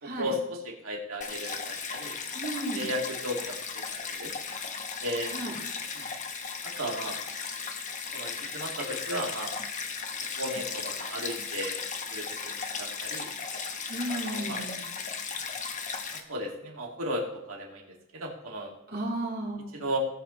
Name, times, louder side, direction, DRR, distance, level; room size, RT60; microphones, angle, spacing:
voice 1, 0.0-2.2 2.7-3.6 3.9-4.3 5.0-5.3 6.0-6.1 6.6-7.2 8.1-9.5 10.4-11.8 12.1-13.3 14.1-14.6 16.1-18.7 19.7-20.0, equal, 70° right, -1 dB, 2.4 m, -35 dB
Stream, 1.2-16.2, left 5 dB, 35° left, 1.1 m, -36 dB
voice 2, 2.3-2.8 5.3-5.6 13.9-14.9 18.9-19.8, right 1 dB, 45° right, -4 dB, 3.6 m, -34 dB
18.0 x 8.3 x 3.2 m, 0.85 s
head